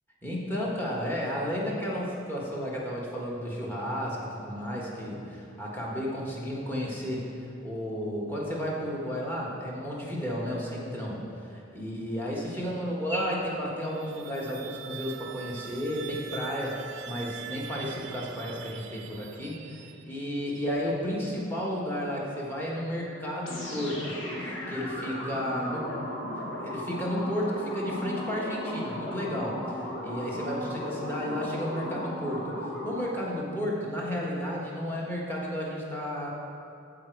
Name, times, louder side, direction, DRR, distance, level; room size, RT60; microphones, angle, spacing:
voice 1, 0.2-7.3 7.6-24.1 24.7-25.9 26.6-29.6 30.0-36.3, equal, 10° left, -4 dB, 1.5 m, -32 dB
sound 1, 13.8-20.4, right 9 dB, 65° right, 0.5 m, -43 dB
sound 2, 23.4-33.3, left 1 dB, 75° left, 1.6 m, -36 dB
14.5 x 5.1 x 4.7 m, 2.6 s
head